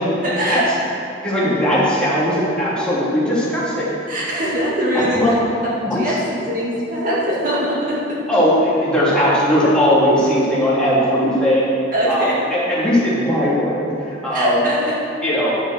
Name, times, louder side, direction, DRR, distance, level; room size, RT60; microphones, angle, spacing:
voice 1, 0.2-0.8 4.1-5.3 5.8-6.1 6.5-8.2 11.9-12.3 14.3-14.9, equal, 45° right, -6 dB, 2.0 m, -21 dB
voice 2, 1.2-3.9 4.9-5.3 5.8-6.1 8.3-11.6 12.1-14.6 15.2-15.5, equal, 5° left, -9 dB, 2.9 m, -18 dB
10.5 x 7.8 x 6.6 m, 3.0 s
head